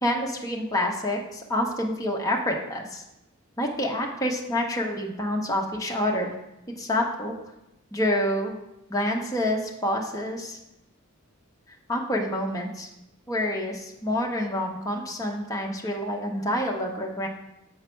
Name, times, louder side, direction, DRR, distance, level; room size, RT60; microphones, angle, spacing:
voice 1, 0.0-3.0 3.6-6.4 6.8-7.3 7.9-8.5 8.9-10.6 11.9-12.9 13.3-17.3, left 1 dB, 15° left, 0 dB, 0.9 m, -27 dB
7.0 x 4.8 x 4.5 m, 0.90 s
head